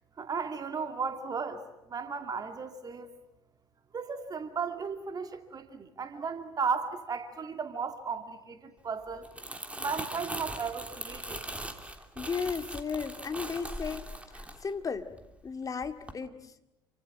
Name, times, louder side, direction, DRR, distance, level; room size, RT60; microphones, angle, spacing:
voice 1, 0.2-1.6 1.9-3.1 3.9-9.3 9.8-11.4, right 5 dB, 30° right, 8 dB, 2.3 m, -35 dB
Crumpling crinkling, 9.1-15.5 15.8-16.1, right 1 dB, 10° right, 3.2 m, -40 dB
voice 2, 12.2-15.1 15.4-16.5, left 5 dB, 30° left, 7 dB, 2.2 m, -35 dB
28.5 x 25.5 x 7.4 m, 0.89 s
figure-of-eight pair, 60°, 12 cm